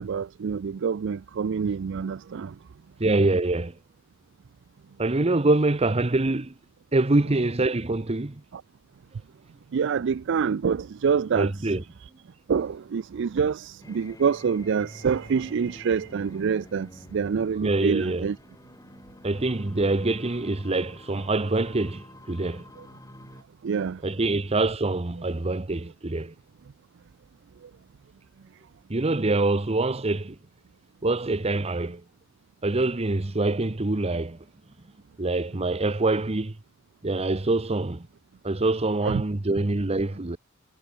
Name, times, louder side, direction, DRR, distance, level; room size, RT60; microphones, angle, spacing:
voice 1, 0.0-2.5 8.5-8.6 9.7-11.5 12.0-12.1 12.5-18.4 23.6-24.0 39.0-39.2, right 6 dB, 60° right, 0.4 m, -26 dB
voice 2, 3.0-3.7 5.0-6.5 6.9-8.4 11.3-11.8 17.6-18.3 19.2-22.6 24.0-26.3 28.9-30.4 31.0-32.0 32.6-34.4 35.2-36.6 37.0-38.1 38.4-40.4, right 2 dB, 30° right, 0.9 m, -25 dB
sound 1, 13.8-23.4, left 1 dB, 15° left, 5.1 m, -48 dB
head